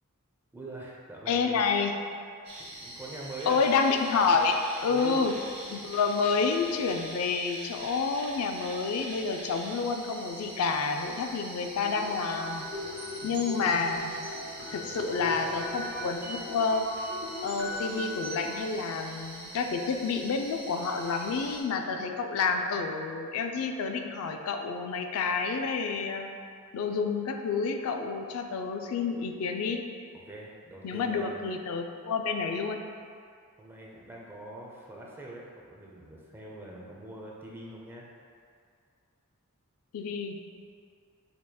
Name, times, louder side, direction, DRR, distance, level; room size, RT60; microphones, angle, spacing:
voice 1, 0.5-1.6 2.6-3.8 4.9-5.2 12.8-13.3 14.6-15.6 15.9-16.0 30.1-31.5 33.6-38.1, right 1 dB, 10° right, -4 dB, 0.5 m, -44 dB
voice 2, 1.3-1.9 3.5-5.3 5.7-12.7 13.2-14.1 14.7-16.9 17.4-26.3 26.7-29.8 30.8-32.8 39.9-40.4, left 4 dB, 75° left, 4 dB, 0.3 m, -29 dB
sound 1, 2.4-21.6, right 1 dB, 25° right, 1.0 m, -44 dB
sound 2, 11.8-18.6, left 1 dB, 85° right, 1.4 m, -39 dB
6.7 x 2.9 x 2.2 m, 2.3 s
head